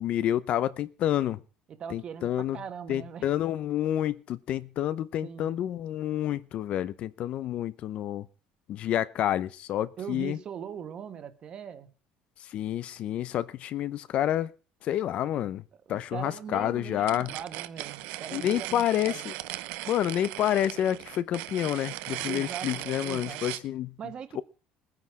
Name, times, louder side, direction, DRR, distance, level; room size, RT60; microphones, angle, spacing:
voice 1, 0.0-1.4 1.9-2.6 2.9-8.3 8.7-10.4 12.5-14.5 14.8-15.6 15.9-17.3 18.3-19.3 19.9-23.9 24.4-24.5, left 11 dB, 45° left, 0.6 m, -29 dB
voice 2, 1.7-3.3 5.2-5.5 10.0-11.9 15.9-19.2 22.2-23.4 24.0-24.4, right 8 dB, 35° right, 1.5 m, -40 dB
sound 1, 17.0-23.7, right 17 dB, 80° right, 0.8 m, -38 dB
20.5 x 9.7 x 4.9 m
cardioid pair, 160°, 3 cm